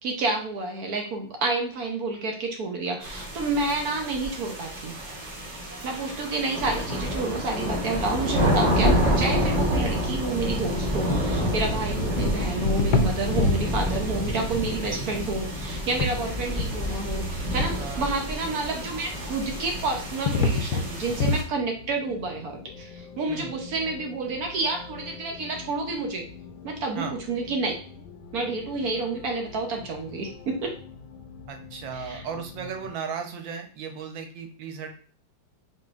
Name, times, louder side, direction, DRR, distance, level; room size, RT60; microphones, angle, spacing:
voice 1, 0.0-4.9 5.8-26.2 26.6-27.8 28.3-30.7 31.9-32.2, right 3 dB, 60° right, 2 dB, 1.1 m, -29 dB
sound 1, 3.0-21.4, equal, 40° right, 1.5 m, -28 dB
sound 2, 9.9-10.1 10.7-10.9 11.4-12.2 12.7-13.7 14.4-14.5 15.7-16.2 16.4-17.1 17.6-17.7 19.5-21.4, left 4 dB, 70° left, 1.1 m, -27 dB
voice 2, 11.0-11.3 12.1-12.2 14.8-15.1 17.8-18.1 23.3-23.5 26.9-27.2 31.5-34.9, right 6 dB, 75° right, 5 dB, 1.5 m, -36 dB
sound 3, 19.4-32.9, left 5 dB, 85° left, 1.4 m, -45 dB
4.2 x 4.1 x 2.4 m, 0.41 s
omnidirectional pair, 2.1 m